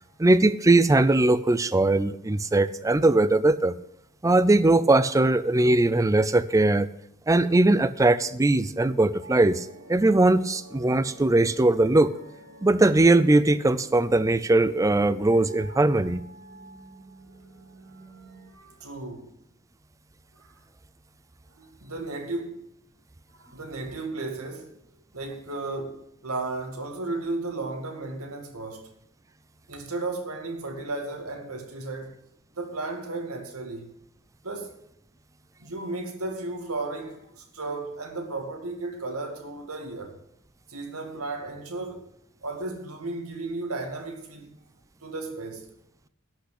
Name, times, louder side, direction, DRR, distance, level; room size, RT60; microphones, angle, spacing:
voice 1, 0.2-3.7 4.2-6.9 7.3-12.1 12.6-16.2, right 2 dB, 15° right, 0.4 m, -20 dB
sound 1, 9.2-18.5, equal, 55° right, 2.2 m, -48 dB
voice 2, 18.5-19.3 20.4-20.5 21.6-22.6 23.4-24.7 25.1-28.9 29.7-32.2 32.6-33.9 34.4-34.8 35.6-40.2 40.7-42.1 42.4-44.5 45.0-45.7, right 2 dB, 85° right, 2.1 m, -34 dB
11.5 x 6.0 x 8.2 m
head